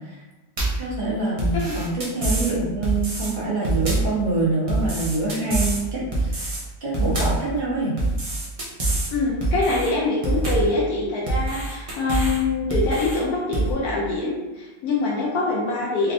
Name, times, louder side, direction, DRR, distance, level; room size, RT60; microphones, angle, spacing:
sound 1, 0.6-0.9 1.4-2.5 2.8-3.3 3.6-4.2 4.7-5.8 6.1-6.6 6.9-7.5 8.0-9.1 9.4-9.9 10.2-10.7 11.3-12.4 12.7-13.2 13.5-13.7, right 2 dB, 65° right, 0.3 m, -25 dB
voice 1, 0.8-6.5 6.8-8.0, right 2 dB, 45° right, -7 dB, 1.0 m, -25 dB
voice 2, 9.1-16.1, left 3 dB, 80° left, -4 dB, 1.1 m, -24 dB
3.4 x 2.0 x 2.5 m, 1.1 s
omnidirectional pair, 1.6 m